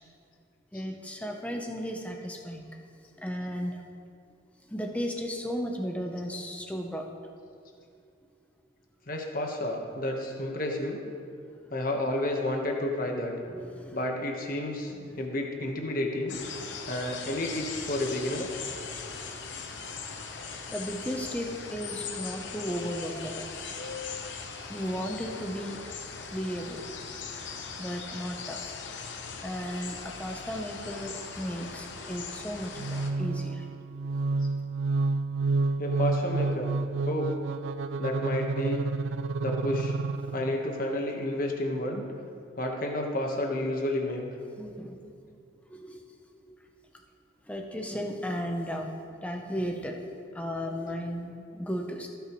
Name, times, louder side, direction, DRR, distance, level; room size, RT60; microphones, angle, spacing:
voice 1, 0.7-2.7 3.2-3.8 4.7-7.1 13.5-14.0 14.9-15.2 15.6-15.7 18.9-19.0 19.3-19.4 20.7-23.5 24.7-25.8 26.3-26.8 27.8-28.6 29.4-33.6 40.3-40.4 44.6-45.1 45.7-46.0 46.4-46.6 47.5-48.9 49.2-50.0 50.3-52.1, equal, 5° left, 2 dB, 0.7 m, -35 dB
voice 2, 9.1-11.0 11.7-13.3 13.9-16.4 16.9-18.5 22.2-22.4 32.8-32.9 35.8-36.7 37.0-37.3 38.0-38.8 39.4-39.9 40.3-42.0 42.6-44.2, left 1 dB, 45° left, 1 dB, 1.2 m, -31 dB
sound 1, 16.3-33.1, left 5 dB, 70° left, 0.9 m, -40 dB
sound 2, 32.8-40.7, right 3 dB, 70° right, 0.3 m, -29 dB
17.5 x 6.9 x 3.1 m, 2.4 s
head